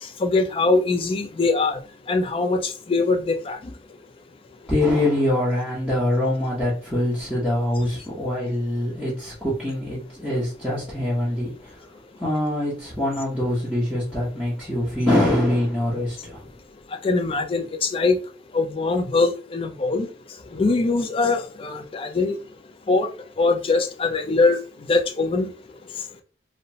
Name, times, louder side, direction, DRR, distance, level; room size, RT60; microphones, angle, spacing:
voice 1, 0.0-1.8 2.1-3.7 17.0-18.2 18.5-20.1 20.5-22.4 22.9-23.1 23.4-25.5, left 3 dB, 30° left, 0.3 m, -22 dB
voice 2, 4.7-11.9 12.2-16.5, left 1 dB, 5° left, 0.7 m, -24 dB
2.8 x 2.0 x 2.7 m
head